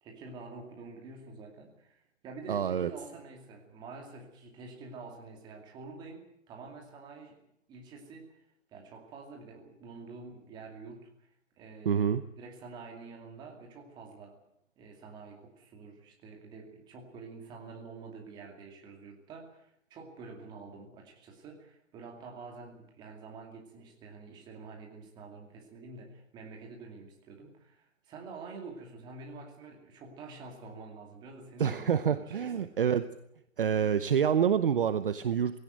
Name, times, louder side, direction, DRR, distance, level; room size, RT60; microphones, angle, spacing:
voice 1, 0.0-7.4 7.7-8.4 8.7-11.3 11.5-14.4 14.8-32.7, right 4 dB, 10° right, 1 dB, 2.5 m, -48 dB
voice 2, 2.5-2.9 11.8-12.2 31.6-33.1 33.6-35.6, right 8 dB, 40° right, 12 dB, 0.9 m, -27 dB
18.0 x 17.0 x 9.2 m, 0.76 s
hypercardioid pair, 165°, 40 cm